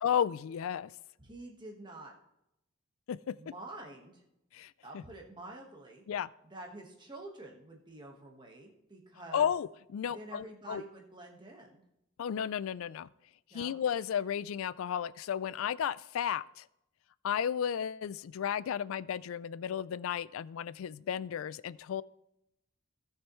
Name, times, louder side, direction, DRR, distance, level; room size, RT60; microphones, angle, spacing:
voice 1, 0.0-0.9 3.1-3.3 4.5-5.0 6.1-6.3 9.3-10.8 12.2-13.1 13.5-16.6 17.2-22.0, left 8 dB, 75° left, 19 dB, 0.3 m, -33 dB
voice 2, 1.2-2.1 3.4-4.2 4.8-6.0 6.4-9.5 10.0-11.8 13.5-13.8, right 2 dB, 20° right, 1 dB, 1.4 m, -48 dB
17.5 x 6.5 x 3.1 m, 0.83 s
head